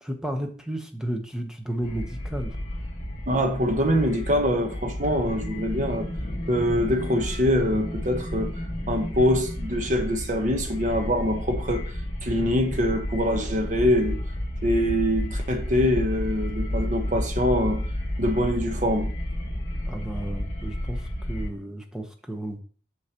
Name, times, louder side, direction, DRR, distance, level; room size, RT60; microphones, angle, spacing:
voice 1, 0.0-2.6 19.9-22.6, right 1 dB, 5° right, 0.9 m, -33 dB
sound 1, 1.8-21.5, left 1 dB, 45° left, 1.6 m, -31 dB
voice 2, 3.3-6.1 6.5-8.6 8.9-11.9 12.2-14.2 14.6-17.8 18.2-19.1, equal, 45° right, 1.0 m, -24 dB
7.7 x 6.4 x 2.9 m
head